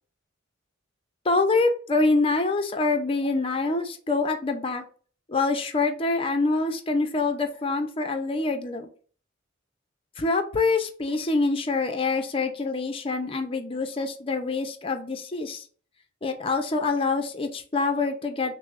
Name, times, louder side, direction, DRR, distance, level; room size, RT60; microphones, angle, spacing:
voice 1, 1.2-4.9 5.3-8.9 10.2-15.6 16.2-18.6, left 3 dB, 30° left, 6 dB, 0.5 m, -25 dB
6.0 x 2.0 x 2.4 m, 0.42 s
head